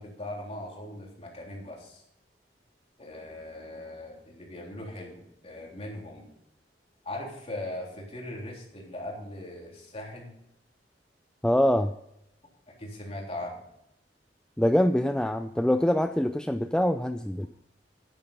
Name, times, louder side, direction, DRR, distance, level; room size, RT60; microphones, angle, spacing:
voice 1, 0.0-2.0 3.0-6.3 7.0-10.3 12.8-13.6, left 1 dB, 35° left, -1 dB, 3.4 m, -39 dB
voice 2, 11.4-11.9 14.6-17.5, left 1 dB, 5° left, 8 dB, 0.4 m, -24 dB
10.0 x 9.1 x 5.4 m, 0.80 s
head